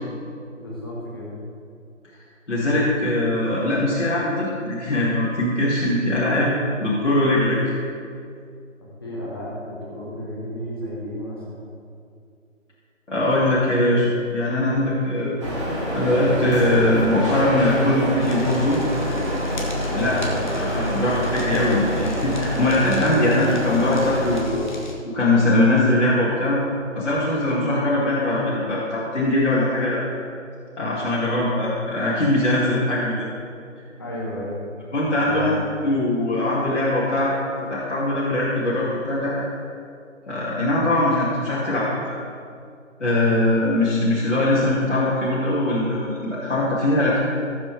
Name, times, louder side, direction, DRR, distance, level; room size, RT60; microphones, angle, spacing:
voice 1, 0.5-1.3 9.0-11.7 19.9-20.6 32.6-32.8 34.0-34.6 35.2-35.5, left 1 dB, 20° left, -6 dB, 1.4 m, -33 dB
voice 2, 2.5-7.6 13.1-15.4 15.9-18.8 19.9-20.2 20.6-24.7 25.1-26.6 26.9-30.1 30.8-33.3 34.9-35.5 35.8-37.3 37.7-39.5 40.3-42.2 43.0-47.2, left 1 dB, 65° left, -8 dB, 2.3 m, -21 dB
sound 1, 15.4-24.4, equal, 25° right, 1.8 m, -26 dB
Fire, 18.2-24.9, left 1 dB, 35° left, 1.2 m, -37 dB
15.0 x 7.4 x 3.4 m, 2.4 s
figure-of-eight pair, 175°, 39 cm